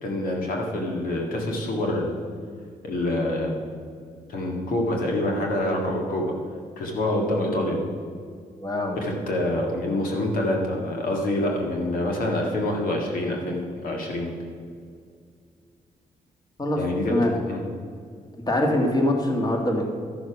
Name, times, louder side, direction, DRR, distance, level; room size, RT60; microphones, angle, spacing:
voice 1, 0.0-2.1 2.8-3.6 4.3-6.2 6.8-7.8 8.9-14.3 16.7-17.2 17.5-17.6, left 1 dB, 80° left, 0 dB, 1.9 m, -26 dB
voice 2, 8.6-9.0 16.6-16.8 17.1-17.3 18.5-19.8, left 1 dB, 25° left, 1 dB, 1.9 m, -23 dB
12.5 x 6.4 x 6.0 m, 2.2 s
cardioid pair, 80°, 15 cm